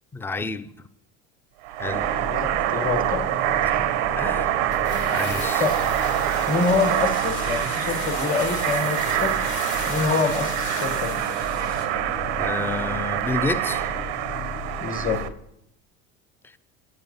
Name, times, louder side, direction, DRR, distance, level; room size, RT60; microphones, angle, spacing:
voice 1, 0.1-0.7 1.8-2.1 3.6-3.7 4.2-4.5 5.1-5.6 12.4-13.9, left 3 dB, 5° left, 0.4 m, -29 dB
sound 1, 1.6-15.3, right 13 dB, 90° right, 0.6 m, -25 dB
sound 2, 1.9-15.3, left 6 dB, 50° left, 0.7 m, -37 dB
voice 2, 2.2-3.3 5.6-5.8 6.5-9.4 9.8-11.2 14.8-15.2, left 5 dB, 25° left, 1.3 m, -26 dB
sound 3, 4.7-12.0 12.3-12.4, left 5 dB, 75° left, 1.6 m, -36 dB
7.9 x 7.6 x 5.3 m
supercardioid pair, 95°, 32 cm